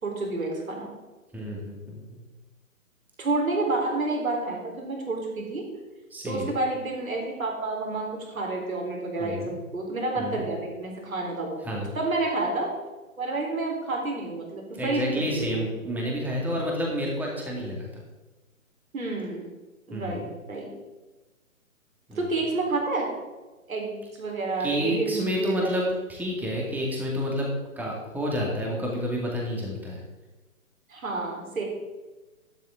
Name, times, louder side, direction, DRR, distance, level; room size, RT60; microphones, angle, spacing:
voice 1, 0.0-0.9 3.2-5.6 6.2-11.6 12.0-12.7 13.2-15.7 18.9-19.4 19.9-20.7 22.1-23.1 23.7-25.7 30.9-31.6, right 2 dB, 80° right, 0 dB, 4.0 m, -29 dB
voice 2, 1.3-2.2 6.1-6.5 9.2-9.6 10.2-10.4 11.6-11.9 14.7-18.0 19.9-20.3 22.1-22.2 24.6-27.5 27.8-30.0, equal, 5° right, -2 dB, 2.2 m, -29 dB
12.0 x 10.0 x 3.8 m, 1.2 s
figure-of-eight pair, 140°, 41 cm